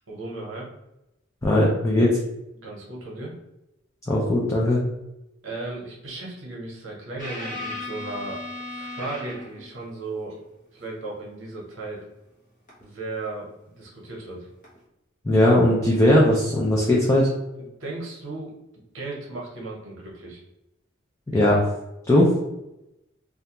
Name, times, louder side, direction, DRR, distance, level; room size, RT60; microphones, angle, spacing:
voice 1, 0.1-0.7 2.6-3.4 5.4-8.4 8.7-10.4 10.7-12.0 12.8-14.5 17.6-18.5 18.9-20.4, right 2 dB, 70° right, -3 dB, 0.9 m, -35 dB
voice 2, 1.4-2.2 4.1-4.8 15.2-17.3 21.3-21.6 22.1-22.3, left 1 dB, 15° left, -4 dB, 0.4 m, -19 dB
sound 1, 7.2-9.7 12.7-12.8 14.6-14.8, left 2 dB, 40° left, 0.8 m, -35 dB
2.4 x 2.2 x 2.9 m, 0.91 s
head